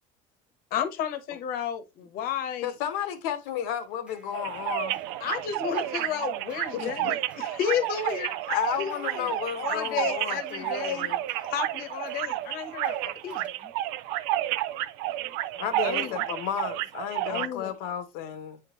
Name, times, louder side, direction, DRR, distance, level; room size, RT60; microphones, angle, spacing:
voice 1, 0.7-2.7 5.2-8.3 8.8-11.1 11.5-13.5 15.8-16.2 17.3-17.7, left 9 dB, 50° left, 1.1 m, -32 dB
voice 2, 2.6-5.0 6.7-7.2 8.5-11.2 15.5-18.6, left 9 dB, 80° left, 1.2 m, -33 dB
sound 1, 3.5-13.5, right 3 dB, 5° right, 1.0 m, -51 dB
sound 2, 4.3-17.5, right 15 dB, 70° right, 0.5 m, -31 dB
voice 3, 5.9-6.3 9.2-9.3 12.3-12.4 13.3-13.7 14.5-16.4, left 5 dB, 10° left, 0.3 m, -57 dB
9.1 x 3.7 x 2.9 m
cardioid pair, 145°, 19 cm